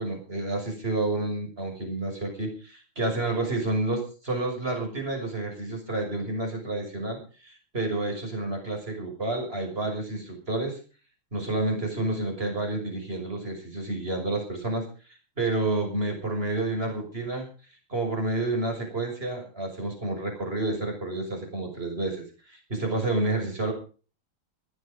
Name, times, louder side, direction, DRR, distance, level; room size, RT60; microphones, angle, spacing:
voice 1, 0.0-10.8 11.3-14.9 15.4-17.5 17.9-22.2 22.5-23.7, right 2 dB, 25° right, 3 dB, 6.5 m, -29 dB
19.0 x 13.0 x 5.3 m, 0.38 s
omnidirectional pair, 2.3 m